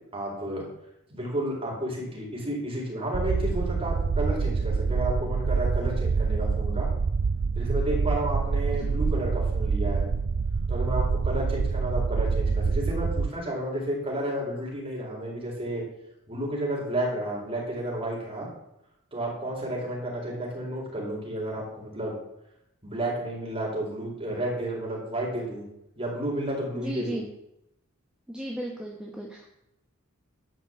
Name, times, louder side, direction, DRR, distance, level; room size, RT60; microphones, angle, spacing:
voice 1, 0.1-0.6 1.1-6.9 7.6-10.0 10.7-15.8 16.3-18.5 19.1-22.1 22.8-25.7 26.0-27.2, right 1 dB, 25° right, -3 dB, 4.3 m, -31 dB
sound 1, 3.1-13.3, right 5 dB, 45° right, 0.4 m, -26 dB
voice 2, 26.7-27.2 28.3-29.5, right 1 dB, 5° right, -2 dB, 1.2 m, -36 dB
11.0 x 6.0 x 7.6 m, 0.84 s
head